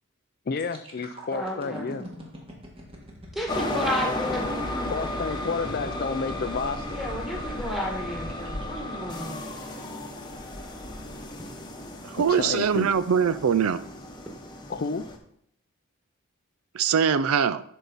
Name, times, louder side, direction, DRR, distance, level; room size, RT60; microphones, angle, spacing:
voice 1, 0.5-2.1 4.9-7.0 12.2-12.9 14.7-15.1, left 4 dB, 45° left, 0.4 m, -31 dB
sound 1, 0.6-10.4 10.9-11.1, equal, 25° right, 1.8 m, -43 dB
voice 2, 1.3-1.9 3.3-4.9 6.9-9.4, equal, ahead, 1.6 m, -32 dB
sound 2, 3.5-15.2, left 1 dB, 20° left, 0.9 m, -34 dB
voice 3, 12.0-13.8 16.7-17.6, right 7 dB, 80° right, 0.4 m, -22 dB
12.0 x 4.7 x 4.0 m
head